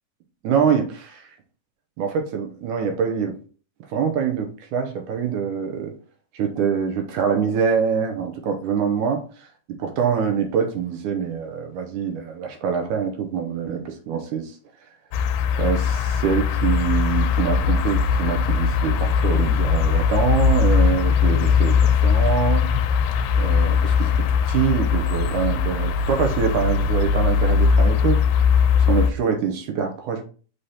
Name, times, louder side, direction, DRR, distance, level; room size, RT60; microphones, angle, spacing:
voice 1, 0.4-1.3 2.0-3.3 3.9-5.9 6.3-9.2 9.8-14.6 15.6-22.9 23.4-28.2 28.9-30.2, right 7 dB, 75° right, 2.1 m, -24 dB
sound 1, 15.1-29.1, left 6 dB, 80° left, 2.3 m, -20 dB
6.5 x 5.6 x 2.8 m
omnidirectional pair, 4.1 m